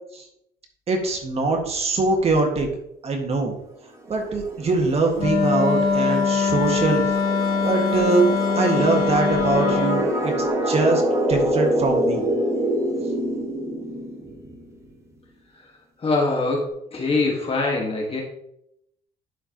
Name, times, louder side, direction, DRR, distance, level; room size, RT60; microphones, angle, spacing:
voice 1, 0.9-2.7 3.0-3.5 4.1-7.0 7.6-8.3 8.6-11.0 11.3-12.2, right 3 dB, 35° right, 3 dB, 1.8 m, -22 dB
sound 1, 4.1-14.6, right 1 dB, 15° right, 1.3 m, -26 dB
Wind instrument woodwind instrument, 5.2-10.1, left 5 dB, 50° left, 2.5 m, -22 dB
voice 2, 16.0-18.2, left 3 dB, 35° left, -1 dB, 1.6 m, -23 dB
11.0 x 4.5 x 3.0 m, 0.76 s
cardioid pair, 110°, 17 cm